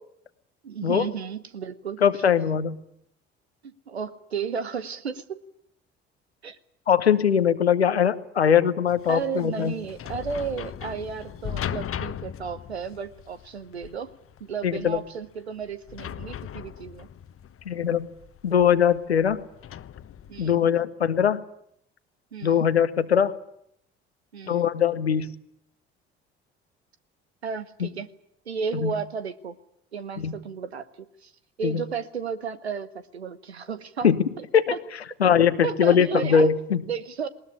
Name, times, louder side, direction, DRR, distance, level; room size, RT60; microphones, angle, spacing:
voice 1, 0.6-2.2 3.6-5.4 6.4-6.6 9.1-14.1 14.4-17.1 20.3-20.6 22.3-22.7 24.3-24.7 27.4-28.1 28.5-29.6 29.9-31.3 31.6-34.1 34.4-34.5 34.7-34.8 35.6-36.5 36.9-37.3, right 6 dB, 90° right, 14 dB, 1.0 m, -33 dB
voice 2, 2.0-2.8 6.9-9.7 14.6-15.0 17.7-18.1 18.4-19.4 20.4-21.4 22.4-23.3 24.5-25.3 27.8-27.9 28.7-28.9 30.2-30.3 31.6-31.8 34.0-34.2 34.5-34.6 35.2-36.8, left 8 dB, 90° left, 14 dB, 1.0 m, -21 dB
sound 1, 8.9-20.6, left 9 dB, 45° left, 1.2 m, -38 dB
20.0 x 19.5 x 10.0 m, 0.72 s
figure-of-eight pair, 50°, 31 cm